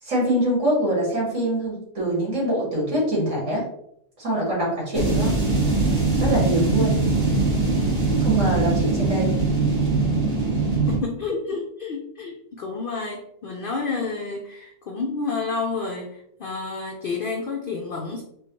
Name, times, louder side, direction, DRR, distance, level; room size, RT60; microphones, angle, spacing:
voice 1, 0.0-3.7 4.2-5.4 6.2-7.0 8.2-9.3, right 1 dB, 55° right, -5 dB, 2.1 m, -24 dB
sound 1, 4.9-11.0, right 3 dB, 25° right, 1.7 m, -21 dB
voice 2, 10.9-18.2, left 4 dB, 75° left, 1 dB, 0.5 m, -30 dB
4.6 x 2.3 x 2.9 m, 0.74 s
omnidirectional pair, 1.5 m